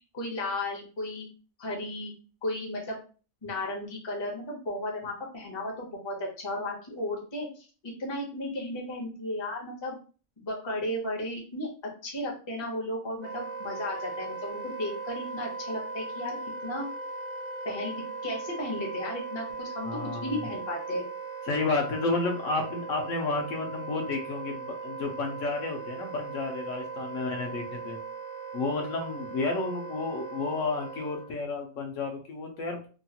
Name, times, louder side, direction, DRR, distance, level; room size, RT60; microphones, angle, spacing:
voice 1, 0.1-1.3 1.6-2.1 2.4-3.0 3.4-7.7 8.0-9.9 10.4-11.7 12.0-16.4 16.6-16.9 17.6-21.0, left 1 dB, 25° left, -1 dB, 0.6 m, -34 dB
Wind instrument woodwind instrument, 13.2-31.4, right 4 dB, 75° right, 1.0 m, -39 dB
voice 2, 19.8-20.4 21.5-28.0 28.5-32.9, left 3 dB, 70° left, 2 dB, 1.0 m, -31 dB
2.9 x 2.3 x 2.7 m, 0.38 s
omnidirectional pair, 1.4 m